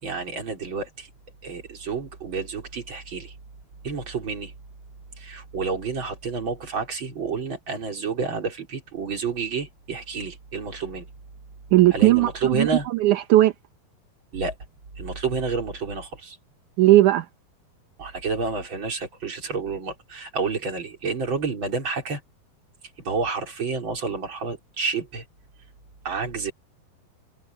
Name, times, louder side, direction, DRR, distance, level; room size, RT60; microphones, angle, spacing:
voice 1, 0.0-1.1 1.4-3.3 3.8-4.5 5.2-11.1 11.9-12.9 14.3-14.5 15.0-16.4 18.0-22.2 23.0-25.2 26.0-26.5, right 4 dB, 30° right, 4.2 m, -29 dB
voice 2, 11.7-13.5 16.8-17.3, right 15 dB, 70° right, 1.9 m, -17 dB
omnidirectional pair, 4.8 m